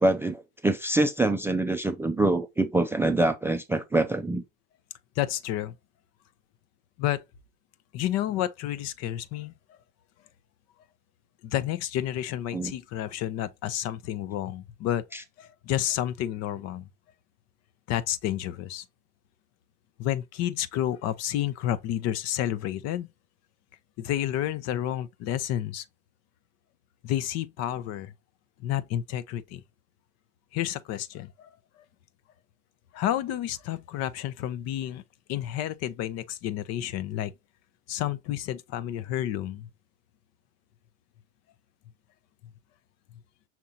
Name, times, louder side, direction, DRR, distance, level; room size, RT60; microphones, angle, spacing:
voice 1, 0.0-4.4 12.5-12.7 15.1-15.2, right 2 dB, 5° right, 0.4 m, -25 dB
voice 2, 5.2-5.7 7.0-7.2 7.9-9.5 11.4-15.0 15.4-16.9 17.9-18.8 20.0-23.1 24.0-25.8 27.0-28.1 28.6-29.6 30.5-31.5 32.9-35.0 35.3-37.3 37.9-39.7, left 12 dB, 45° left, 0.7 m, -30 dB
5.8 x 3.6 x 2.6 m
hypercardioid pair, 90°, 34 cm